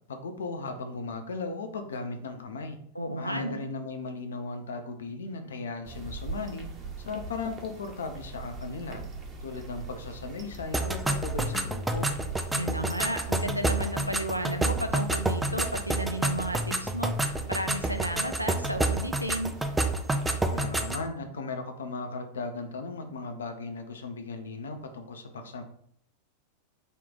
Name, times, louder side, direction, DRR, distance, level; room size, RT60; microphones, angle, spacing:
voice 1, 0.1-2.8 3.2-6.7 7.0-9.0 9.4-12.1 20.5-25.6, left 3 dB, 65° left, 6 dB, 0.5 m, -37 dB
voice 2, 2.9-3.6 12.5-19.5, right 1 dB, 90° right, 7 dB, 0.3 m, -33 dB
sound 1, 5.8-20.6, right 3 dB, 25° right, 0.7 m, -42 dB
sound 2, 10.7-21.1, right 2 dB, 5° right, 0.3 m, -29 dB
3.6 x 2.4 x 3.8 m, 0.65 s
figure-of-eight pair, 90°, 0 cm